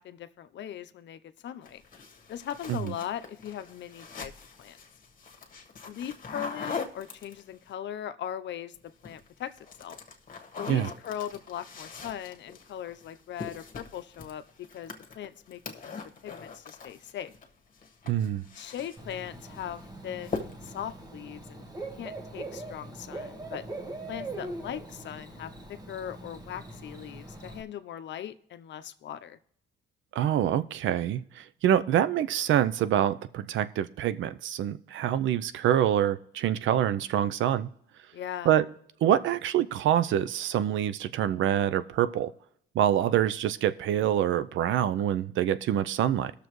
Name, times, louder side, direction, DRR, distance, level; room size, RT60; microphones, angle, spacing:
voice 1, 0.0-1.8 2.3-4.3 4.6-4.8 5.8-10.0 10.6-14.4 14.7-15.8 16.2-17.3 18.6-21.7 22.0-23.6 24.1-29.4 38.1-38.5, left 10 dB, 65° left, 0.7 m, -39 dB
sound 1, 1.6-7.7 8.8-9.3 9.6-17.5 17.7-19.2 19.6-19.9 20.2-20.8, left 5 dB, 45° left, 1.4 m, -42 dB
voice 2, 18.1-18.4 30.1-37.7 38.4-38.7 39.0-42.3 42.7-46.3, right 10 dB, 75° right, 0.6 m, -26 dB
Bird / Cricket, 19.0-27.6, right 2 dB, 20° right, 1.3 m, -42 dB
19.0 x 6.6 x 3.1 m
cardioid pair, 90°, 20 cm